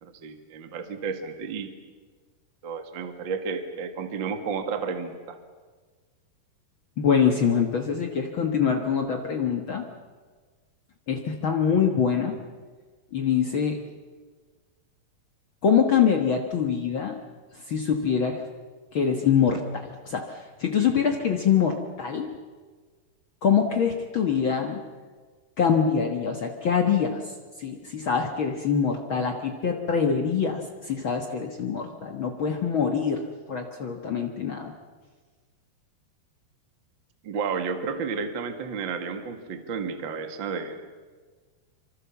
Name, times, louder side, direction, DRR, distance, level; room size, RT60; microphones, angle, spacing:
voice 1, 0.0-1.7 2.6-5.4 37.2-40.8, right 5 dB, 40° right, 7 dB, 1.8 m, -32 dB
voice 2, 7.0-9.9 11.1-12.4 13.1-13.8 15.6-17.2 17.7-18.4 18.9-22.3 23.4-24.8 25.6-27.2 27.6-34.7, left 7 dB, 70° left, 4 dB, 1.1 m, -24 dB
26.0 x 25.0 x 7.2 m, 1.4 s
omnidirectional pair, 4.6 m